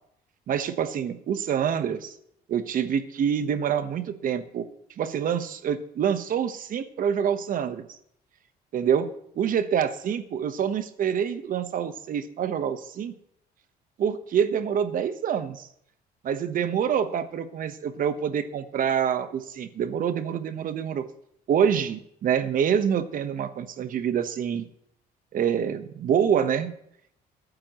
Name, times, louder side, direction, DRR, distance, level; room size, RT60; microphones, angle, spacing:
voice 1, 0.5-2.1 2.5-4.6 5.0-8.0 8.7-9.1 9.4-13.1 14.0-15.7 16.2-21.0 21.5-24.7 25.3-26.7, right 8 dB, 55° right, 11 dB, 1.1 m, -26 dB
23.0 x 9.0 x 3.1 m, 0.73 s
cardioid pair, 110°, 17 cm